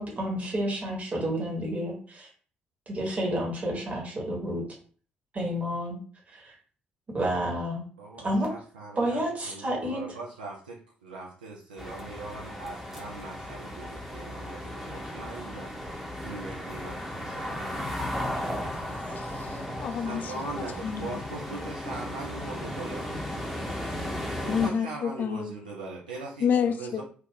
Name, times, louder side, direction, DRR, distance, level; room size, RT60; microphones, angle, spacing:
voice 1, 0.0-2.3 2.9-4.6 5.3-6.0 6.3-6.5 7.1-7.8 8.2-8.5 9.0-10.2, equal, 30° right, -2 dB, 1.0 m, -30 dB
voice 2, 8.0-15.7 16.2-17.9 18.2-18.7 20.0-23.1 24.4-26.5 26.8-27.0, right 3 dB, 80° right, -3 dB, 0.4 m, -41 dB
sound 1, 11.8-24.7, left 1 dB, 5° right, 0.7 m, -35 dB
voice 3, 19.2-21.2 24.5-25.5 26.4-27.0, left 7 dB, 40° left, 9 dB, 0.3 m, -29 dB
2.3 x 2.2 x 3.3 m, 0.42 s
figure-of-eight pair, 45°, 5 cm